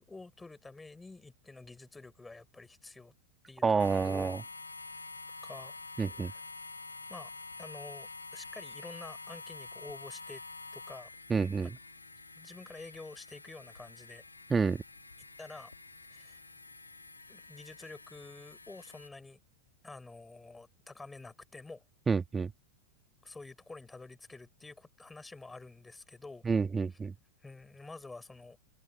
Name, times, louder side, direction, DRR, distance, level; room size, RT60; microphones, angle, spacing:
voice 1, 0.0-3.1 3.5-3.6 4.0-4.4 5.4-5.8 6.2-6.4 7.1-7.3 7.6-10.4 10.7-11.1 11.6-11.8 12.4-14.2 15.4-15.7 16.1-16.4 17.3-19.4 19.8-21.8 23.2-26.5 27.4-28.6, left 3 dB, 10° left, 6.4 m, -49 dB
voice 2, 3.6-4.4 6.0-6.3 11.3-11.8 14.5-14.8 22.1-22.5 26.4-27.1, right 5 dB, 15° right, 2.0 m, -29 dB
sound 1, 3.8-19.1, left 3 dB, 80° left, 2.6 m, -48 dB
figure-of-eight pair, 90°, 0 cm